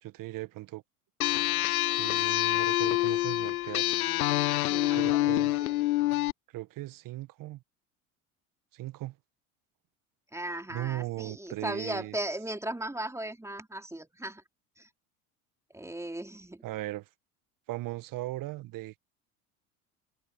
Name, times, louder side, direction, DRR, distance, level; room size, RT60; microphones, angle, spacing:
voice 1, 0.0-0.8 1.8-4.0 4.9-5.5 6.5-7.6 8.7-9.1 10.7-12.1 16.6-17.1 17.7-19.0, right 17 dB, 50° right, 1.6 m, -38 dB
sound 1, 1.2-6.3, left 17 dB, 75° left, 0.7 m, -27 dB
voice 2, 4.6-5.7 10.3-14.4 14.8-14.9 15.7-16.7, right 1 dB, 5° right, 3.6 m, -37 dB
hypercardioid pair, 75°, 43 cm